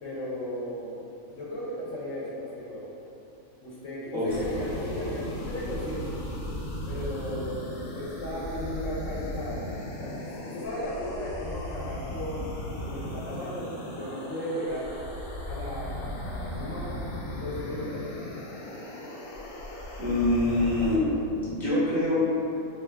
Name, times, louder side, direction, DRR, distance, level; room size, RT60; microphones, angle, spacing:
voice 1, 0.0-1.0 1.3-2.9 3.6-6.2 6.9-9.6 10.0-12.5 12.8-14.9 15.5-17.0 17.3-18.2, equal, 65° left, -7 dB, 0.9 m, -35 dB
sound 1, 4.3-21.0, left 1 dB, 90° left, 1.1 m, -37 dB
voice 2, 20.0-22.2, left 1 dB, ahead, -11 dB, 0.6 m, -25 dB
2.7 x 2.3 x 3.2 m, 2.7 s
omnidirectional pair, 1.5 m